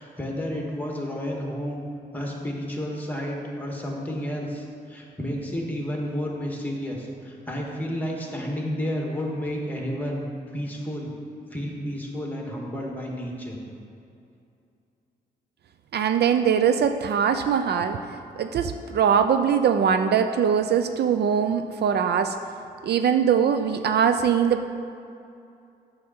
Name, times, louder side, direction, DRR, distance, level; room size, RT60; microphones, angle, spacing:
voice 1, 0.0-1.8 2.1-10.2 10.5-11.1 11.5-13.6, equal, 10° left, -1 dB, 1.9 m, -31 dB
voice 2, 15.9-18.0 18.4-22.4 22.8-24.7, right 7 dB, 65° right, 8 dB, 0.4 m, -22 dB
8.1 x 6.5 x 4.4 m, 2.6 s
cardioid pair, 65°, 18 cm